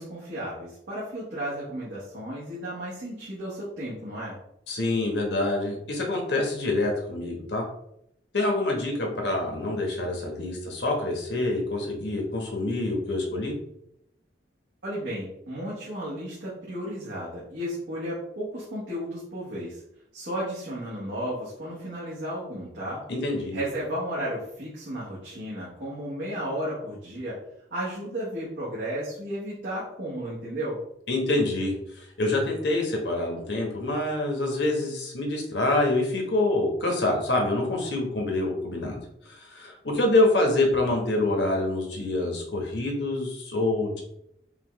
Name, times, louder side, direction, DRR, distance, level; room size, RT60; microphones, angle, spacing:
voice 1, 0.0-4.4 14.8-19.8 20.1-23.0 23.5-27.4 27.7-30.8, equal, 80° right, -8 dB, 1.4 m, -33 dB
voice 2, 4.7-7.6 8.3-13.5 23.1-23.6 31.1-31.7 32.2-39.0 39.3-44.0, left 2 dB, 75° left, 0 dB, 1.2 m, -26 dB
5.5 x 2.5 x 3.1 m, 0.77 s
head